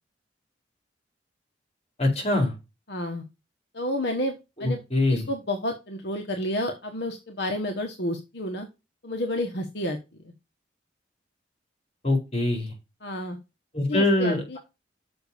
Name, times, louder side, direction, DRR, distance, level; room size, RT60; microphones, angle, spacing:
voice 1, 2.0-2.5 4.6-5.3 12.0-12.7 13.7-14.6, left 2 dB, 35° left, 2 dB, 4.2 m, -24 dB
voice 2, 2.9-3.2 3.7-4.8 5.1-8.7 9.0-10.0 10.2-10.3 13.0-13.4 13.9-14.6, left 1 dB, 65° left, 4 dB, 1.4 m, -30 dB
6.8 x 5.3 x 6.9 m, 0.26 s
head